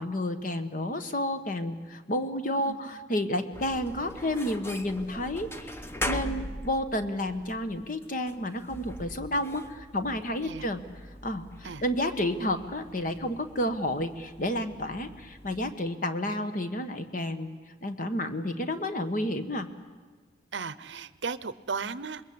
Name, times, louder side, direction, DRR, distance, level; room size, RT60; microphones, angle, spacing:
voice 1, 0.0-5.7 6.1-10.8 11.2-17.5 17.8-19.7, left 1 dB, 45° left, 9 dB, 1.3 m, -31 dB
sound 1, 3.5-15.7, left 1 dB, 15° left, 1.0 m, -41 dB
voice 2, 6.2-6.5 10.4-10.6 11.6-11.8 20.5-22.2, right 5 dB, 80° right, 16 dB, 0.8 m, -36 dB
27.0 x 21.5 x 8.7 m, 1.4 s
head